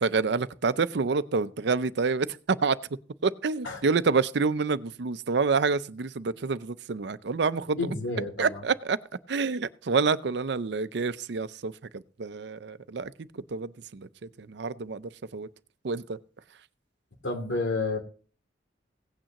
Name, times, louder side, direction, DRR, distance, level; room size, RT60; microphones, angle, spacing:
voice 1, 0.0-2.8 3.2-7.8 8.4-9.0 9.3-14.1 14.4-15.5 15.8-16.2, right 4 dB, 65° right, 0.5 m, -28 dB
voice 2, 7.8-8.6 17.2-18.0, left 3 dB, 80° left, 2.7 m, -30 dB
17.0 x 8.8 x 2.9 m
head